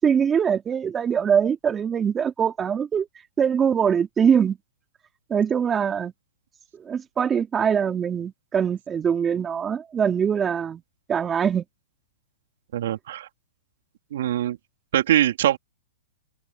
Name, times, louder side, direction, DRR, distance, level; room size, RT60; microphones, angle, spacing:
voice 1, 0.0-3.1 3.4-4.6 5.3-6.1 6.8-10.8 11.1-11.6, right 7 dB, 20° right, 3.1 m, -22 dB
voice 2, 12.7-13.3 14.1-14.6 14.9-15.6, right 12 dB, 65° right, 3.9 m, -22 dB
hypercardioid pair, 135°, 0 cm